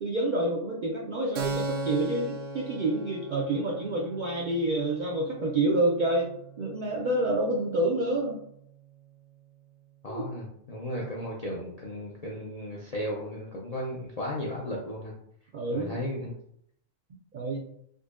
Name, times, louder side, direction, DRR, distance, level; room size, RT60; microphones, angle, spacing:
voice 1, 0.0-6.3 6.6-8.4 10.1-10.2 15.5-15.9 17.3-17.6, right 1 dB, 65° right, -2 dB, 0.4 m, -28 dB
Keyboard (musical), 1.3-8.7, right 3 dB, 80° right, 0.9 m, -39 dB
voice 2, 10.0-15.1 15.7-16.3, equal, 55° left, -4 dB, 0.4 m, -35 dB
3.8 x 2.7 x 2.4 m, 0.70 s
omnidirectional pair, 1.3 m